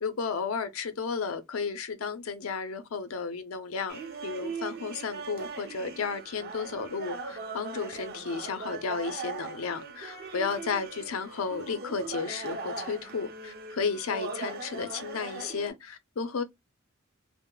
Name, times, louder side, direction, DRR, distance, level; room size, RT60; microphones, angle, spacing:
voice 1, 0.0-16.4, left 5 dB, 80° left, 0.5 m, -33 dB
sound 1, 3.9-15.7, right 4 dB, 50° right, 0.6 m, -40 dB
2.2 x 2.0 x 3.7 m
head